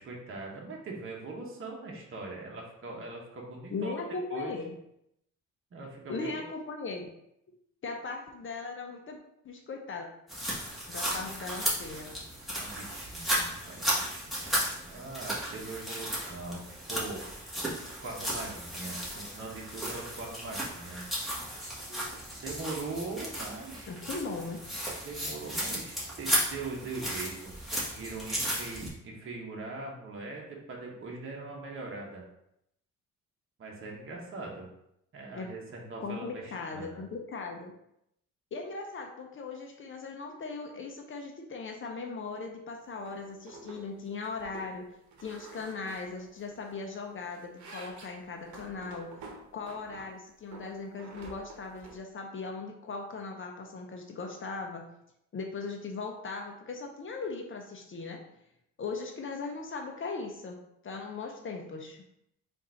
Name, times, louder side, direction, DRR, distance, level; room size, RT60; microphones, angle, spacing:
voice 1, 0.0-4.0 4.3-4.6 5.7-6.3 10.9-11.1 12.6-17.5 18.0-21.0 22.4-23.9 25.0-32.2 33.6-34.7 35.1-37.1, right 3 dB, 45° right, -1 dB, 1.0 m, -41 dB
voice 2, 3.7-4.7 6.1-7.1 7.8-9.2 9.4-10.1 10.9-12.1 23.9-24.6 35.3-35.5 36.0-37.7 38.5-44.9 45.2-49.1 49.5-54.9 55.3-58.2 58.8-62.0, left 4 dB, 40° left, 2 dB, 0.7 m, -38 dB
sound 1, 10.3-28.9, equal, ahead, 1.5 m, -35 dB
sound 2, 43.1-43.2 43.5-43.8 44.1-44.7 45.1-46.7 47.1-50.1 50.5-52.0, right 3 dB, 70° right, 1.0 m, -48 dB
3.7 x 2.6 x 4.4 m, 0.79 s
cardioid pair, 90°, 30 cm